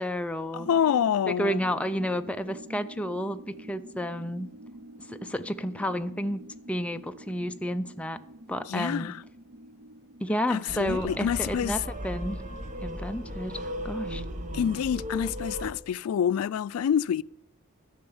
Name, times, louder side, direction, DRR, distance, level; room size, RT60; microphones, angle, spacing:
voice 1, 0.0-0.7 1.3-4.5 5.1-6.4 6.7-8.2 8.5-9.1 10.2-12.4 12.8-14.2, equal, 5° left, 0.3 m, -31 dB
voice 2, 0.5-1.6 8.7-9.2 10.5-11.8 14.5-17.2, left 8 dB, 90° left, 0.3 m, -27 dB
sound 1, 0.5-11.4, right 1 dB, 60° right, 0.6 m, -47 dB
sound 2, 10.7-15.7, equal, 35° right, 0.9 m, -36 dB
11.0 x 5.5 x 7.1 m
head